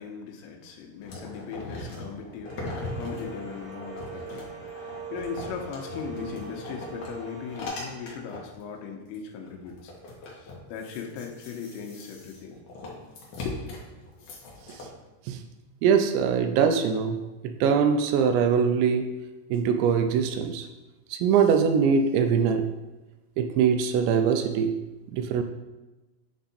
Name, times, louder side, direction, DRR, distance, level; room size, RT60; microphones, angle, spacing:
voice 1, 0.0-9.9 10.3-12.6 13.4-13.8, left 6 dB, 85° left, 2 dB, 3.0 m, -38 dB
sound 1, 1.0-8.6 9.1-9.2 9.4-14.9, left 2 dB, 60° left, 2.1 m, -40 dB
sound 2, 2.4-7.7, right 5 dB, 50° right, 1.0 m, -41 dB
voice 2, 15.8-19.2 19.5-20.7 21.1-22.7 23.4-24.8 25.1-25.4, right 6 dB, 85° right, 7 dB, 2.7 m, -23 dB
9.3 x 3.6 x 4.1 m, 1.1 s
omnidirectional pair, 5.2 m